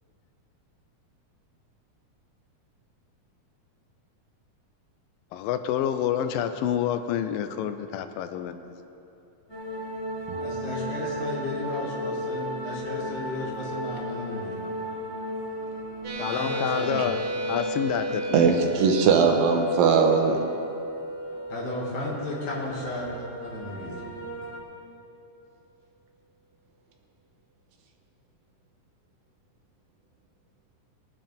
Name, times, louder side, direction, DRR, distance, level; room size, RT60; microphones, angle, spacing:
voice 1, 5.3-8.7 16.2-17.2 17.5-18.4, left 9 dB, 85° left, 9 dB, 2.3 m, -28 dB
sound 1, 9.5-24.6, equal, 15° left, 1.0 m, -36 dB
voice 2, 10.4-14.6 16.3-17.1 21.5-23.1 23.4-24.0, left 2 dB, 60° left, -5 dB, 3.7 m, -34 dB
sound 2, 16.0-24.1, right 1 dB, 40° right, 2.4 m, -33 dB
voice 3, 18.3-20.4, right 5 dB, 85° right, 3 dB, 2.9 m, -20 dB
21.0 x 10.0 x 3.6 m, 2.8 s
omnidirectional pair, 4.0 m